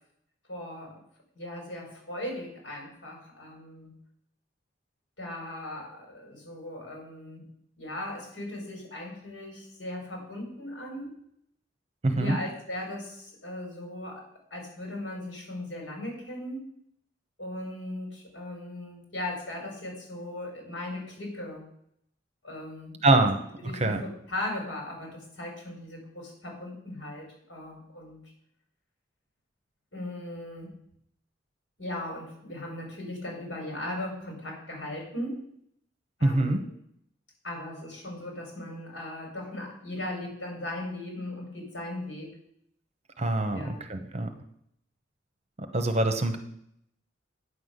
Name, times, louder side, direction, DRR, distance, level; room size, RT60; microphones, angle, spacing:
voice 1, 0.5-0.9 1.3-3.9 5.2-7.5 7.8-11.1 12.1-14.2 14.5-16.6 17.4-21.6 22.4-23.3 23.6-28.2 29.9-30.7 31.8-35.4 36.2-36.6 37.4-42.3 43.5-43.8, left 1 dB, 80° left, 0 dB, 5.1 m, -38 dB
voice 2, 12.0-12.4 23.0-23.4 23.8-24.0 36.2-36.6 43.2-44.3 45.6-46.4, right 2 dB, 35° right, 7 dB, 1.1 m, -24 dB
9.7 x 6.0 x 8.1 m, 0.72 s
head